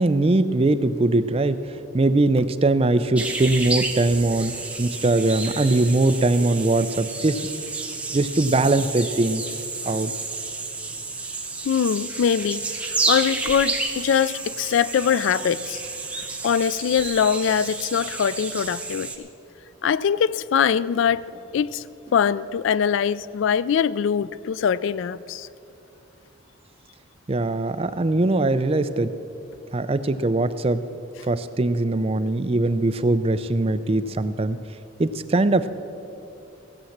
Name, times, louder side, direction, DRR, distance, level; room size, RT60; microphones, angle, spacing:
voice 1, 0.0-1.6 1.9-7.4 8.1-9.4 9.9-10.1 27.3-29.1 29.7-30.8 31.3-34.6 35.0-35.7, right 2 dB, 30° right, 0.4 m, -21 dB
sound 1, 3.1-19.2, right 3 dB, 5° right, 0.8 m, -31 dB
voice 2, 11.6-15.8 16.4-19.3 19.8-21.2 21.5-21.8 22.1-25.5, left 7 dB, 70° left, 0.3 m, -22 dB
16.0 x 7.7 x 7.2 m
head